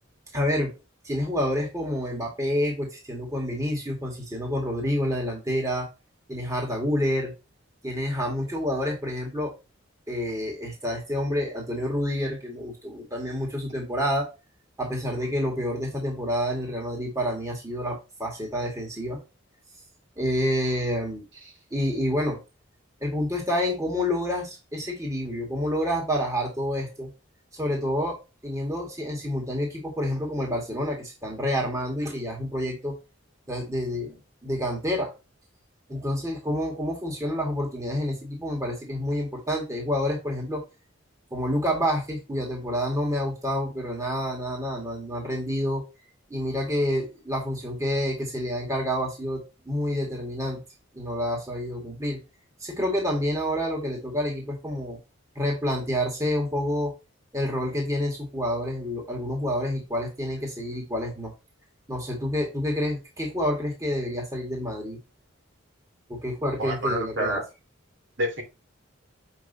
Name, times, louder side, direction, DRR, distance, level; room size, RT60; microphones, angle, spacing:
voice 1, 0.3-0.7 1.0-5.9 6.3-7.3 7.8-9.5 10.1-14.3 14.8-19.2 20.2-21.3 21.7-22.4 23.0-27.1 27.5-28.2 28.4-33.0 33.5-35.1 35.9-40.6 41.3-45.8 46.3-50.6 50.9-52.2 52.6-55.0 55.4-56.9 57.3-61.3 61.9-65.0 66.1-67.4, equal, 15° right, 0 dB, 2.1 m, -28 dB
voice 2, 66.6-67.4 68.2-68.4, right 1 dB, 65° right, 1 dB, 2.9 m, -27 dB
7.4 x 5.4 x 2.8 m, 0.28 s
head